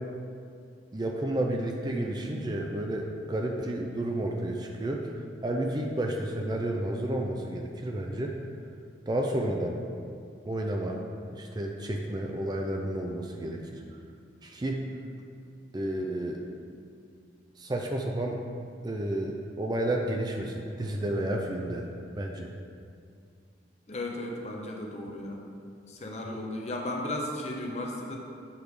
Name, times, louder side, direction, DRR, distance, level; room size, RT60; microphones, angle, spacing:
voice 1, 0.9-5.0 5.4-8.4 9.1-9.8 10.5-11.0 11.3-14.0 14.4-14.8 15.7-16.4 17.6-18.4 18.8-21.9 22.2-22.5 26.2-26.4, right 1 dB, 20° right, 1 dB, 0.4 m, -31 dB
voice 2, 23.9-25.4 25.9-28.2, left 1 dB, 35° left, 0 dB, 0.7 m, -35 dB
8.1 x 3.5 x 4.8 m, 2.3 s
head